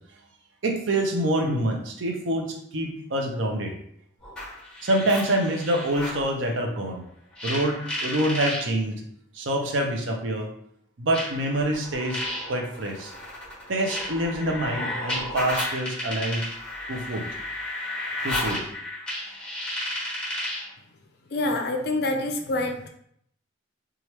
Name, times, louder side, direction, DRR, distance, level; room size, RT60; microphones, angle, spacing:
voice 1, 0.6-3.7 4.8-7.0 7.4-9.0 9.3-10.5 11.0-12.2 12.5-13.1 13.7-16.5 16.9-17.2 18.2-18.6, right 1 dB, 70° right, 2 dB, 0.5 m, -26 dB
sound 1, 4.2-6.2 7.4-8.6 9.7-9.8 11.1-20.7, left 1 dB, 5° left, 1.2 m, -33 dB
voice 2, 21.3-22.9, left 2 dB, 50° left, 3 dB, 0.4 m, -26 dB
2.9 x 2.4 x 3.1 m, 0.71 s
head